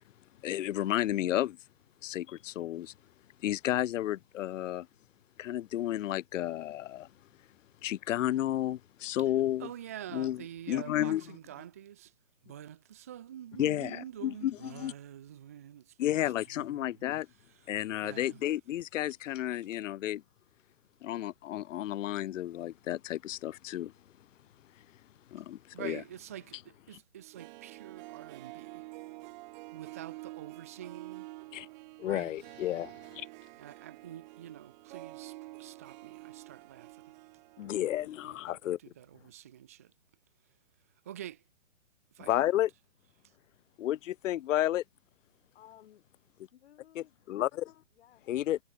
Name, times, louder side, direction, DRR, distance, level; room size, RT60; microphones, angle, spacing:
voice 1, 0.4-1.6 2.0-2.9 3.4-4.9 5.4-7.1 7.8-9.7 10.1-11.4 13.6-14.9 16.0-17.3 17.7-20.2 21.0-23.9 25.3-26.0 26.9-27.0 31.5-31.7 32.0-33.3 37.6-38.8 42.2-42.7 43.8-44.8 47.0-47.7 48.3-48.6, left 13 dB, 70° left, 0.5 m, -32 dB
voice 2, 9.6-12.1 12.4-16.2 16.8-16.9 18.0-18.4 25.7-28.8 29.7-31.3 32.0-32.3 33.6-37.0 39.0-39.9 41.1-41.4 42.2-42.4, right 11 dB, 10° right, 0.4 m, -46 dB
Harp, 27.2-38.2 38.4-38.5, right 21 dB, 35° right, 4.2 m, -48 dB
voice 3, 45.5-47.3 47.9-48.4, left 11 dB, 50° left, 7.2 m, -59 dB
hypercardioid pair, 145°, 40 cm